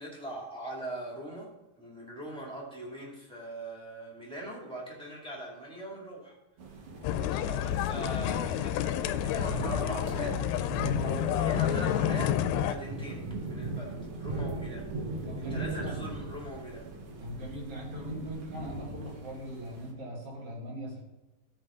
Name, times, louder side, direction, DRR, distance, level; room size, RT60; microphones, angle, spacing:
voice 1, 0.0-1.5 1.8-6.3 7.0-10.4 11.0-14.9 15.4-17.0, right 1 dB, 5° left, -4 dB, 1.0 m, -41 dB
sound 1, 6.6-19.9, right 2 dB, 75° right, 1.2 m, -39 dB
sound 2, 7.0-12.7, left 11 dB, 80° left, 2.1 m, -29 dB
voice 2, 10.7-11.2 15.2-15.9 17.2-21.0, right 1 dB, 45° right, -3 dB, 3.0 m, -39 dB
14.0 x 5.6 x 3.7 m, 1.0 s
omnidirectional pair, 4.4 m